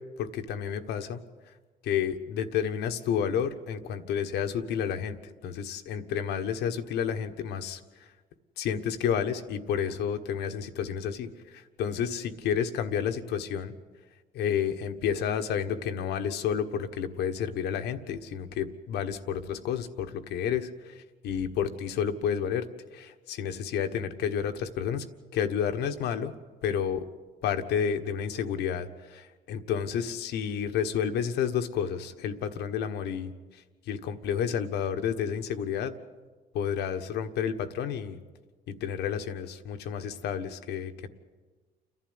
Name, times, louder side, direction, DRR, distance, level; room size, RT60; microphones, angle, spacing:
voice 1, 0.2-1.2 1.8-5.2 5.4-7.8 8.6-13.7 14.3-20.9 21.2-22.7 22.9-25.0 25.3-26.3 26.6-27.0 27.4-33.3 33.9-35.9 36.5-38.2 38.7-41.1, left 8 dB, 80° left, 8 dB, 1.5 m, -30 dB
29.5 x 11.5 x 9.8 m, 1.4 s
cardioid pair, 110°, 17 cm